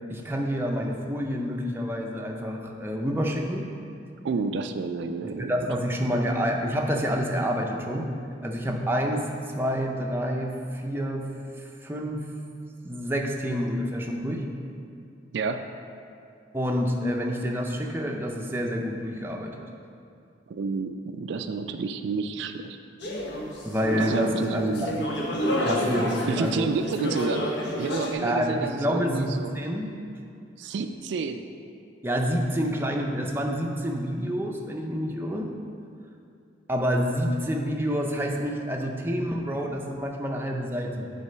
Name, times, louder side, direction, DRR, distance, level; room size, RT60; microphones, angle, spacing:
voice 1, 0.1-3.7 5.2-8.1 8.4-11.3 11.6-12.3 12.8-14.4 16.5-19.7 23.6-25.2 25.6-26.7 28.2-29.9 32.0-35.5 36.7-41.1, equal, 10° right, 1 dB, 0.5 m, -28 dB
voice 2, 4.2-5.5 15.3-15.7 20.5-22.8 24.0-24.9 26.3-29.5 30.6-31.5, right 4 dB, 70° right, 7 dB, 0.3 m, -30 dB
sound 1, 23.0-28.1, equal, 70° left, 1.1 m, -29 dB
8.2 x 4.1 x 5.6 m, 2.5 s
head